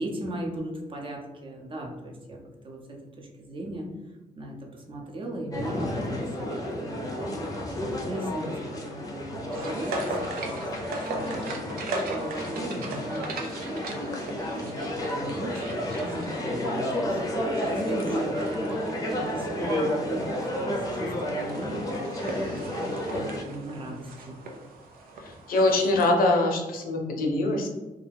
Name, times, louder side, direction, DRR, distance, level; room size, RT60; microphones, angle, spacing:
voice 1, 0.0-2.4 2.6-3.9 4.4-11.7 12.1-13.5 13.9-22.0 22.3-24.4, right 1 dB, 35° right, -1 dB, 0.7 m, -38 dB
sound 1, 5.5-23.4, left 1 dB, 25° left, 0.6 m, -31 dB
sound 2, 9.5-26.1, right 2 dB, 85° right, 0.5 m, -39 dB
voice 2, 25.2-27.7, left 2 dB, 80° left, 2 dB, 0.6 m, -23 dB
2.3 x 2.2 x 3.3 m, 1.1 s
cardioid pair, 95°, 15 cm